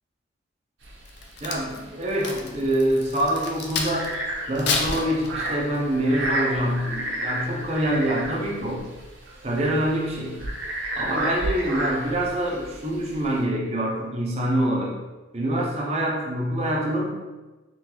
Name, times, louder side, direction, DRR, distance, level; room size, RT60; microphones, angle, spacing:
sound 1, 0.8-13.4, right 1 dB, 70° right, 0.8 m, -32 dB
Crack, 1.0-4.1 4.5-5.8 6.3-6.5, left 4 dB, 60° left, 0.5 m, -30 dB
voice 1, 1.4-4.1 4.5-8.8 9.4-10.4 11.0-15.0 15.3-17.1, right 1 dB, 35° right, -3 dB, 0.6 m, -25 dB
3.8 x 3.3 x 3.0 m, 1.2 s
head